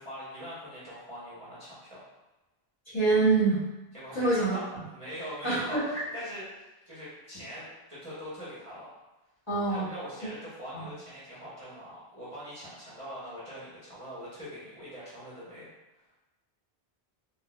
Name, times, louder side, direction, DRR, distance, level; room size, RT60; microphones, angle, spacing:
voice 1, 0.0-2.0 3.9-8.9 9.7-15.7 15.9-16.0, equal, 35° right, -11 dB, 1.0 m, -42 dB
voice 2, 2.9-3.6 4.1-4.8 5.4-6.0 9.5-9.8 10.7-10.8, right 3 dB, 30° left, -12 dB, 1.2 m, -26 dB
3.9 x 2.4 x 2.3 m, 1.0 s
omnidirectional pair, 1.0 m